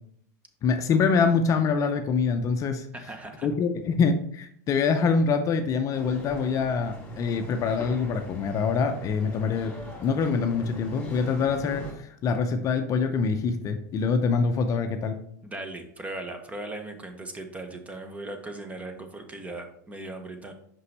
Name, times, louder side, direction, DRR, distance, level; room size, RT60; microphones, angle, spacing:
voice 1, 0.6-2.9 3.4-9.7 10.0-15.2, left 5 dB, 35° left, 7 dB, 0.6 m, -25 dB
voice 2, 2.9-3.5 15.4-20.5, right 2 dB, 15° right, 6 dB, 0.9 m, -38 dB
sound 1, 5.9-11.9, equal, 15° left, 2.1 m, -41 dB
5.6 x 5.3 x 3.3 m, 0.67 s
hypercardioid pair, 110°, 10 cm